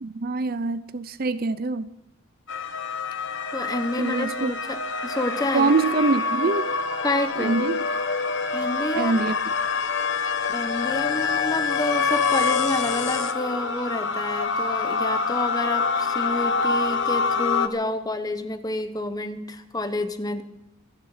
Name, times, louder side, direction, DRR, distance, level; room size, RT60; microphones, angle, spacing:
voice 1, 0.0-1.9 4.0-4.5 5.5-6.7 7.4-7.8 9.0-9.4, right 3 dB, 40° right, 0.5 m, -24 dB
sound 1, 2.5-17.7, left 4 dB, 55° left, 1.1 m, -26 dB
voice 2, 3.5-5.7 7.0-7.6 8.5-9.1 10.5-20.4, left 2 dB, 15° left, 1.1 m, -29 dB
25.5 x 11.0 x 5.0 m
head